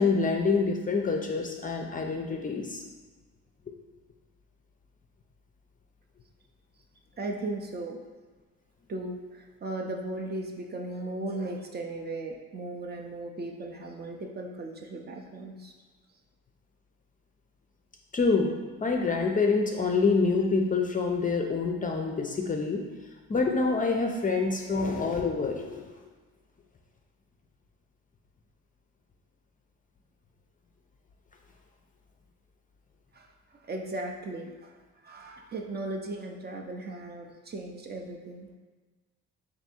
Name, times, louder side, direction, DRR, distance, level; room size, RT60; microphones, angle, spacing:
voice 1, 0.0-2.8 18.1-18.5 18.8-22.8 23.3-25.9, left 4 dB, 25° left, 2 dB, 0.4 m, -26 dB
voice 2, 7.2-8.0 8.9-15.7 33.1-33.3 33.6-34.7 35.0-38.6, right 2 dB, 35° right, 1 dB, 0.5 m, -37 dB
3.4 x 2.6 x 4.2 m, 1.3 s
cardioid pair, 90°, 30 cm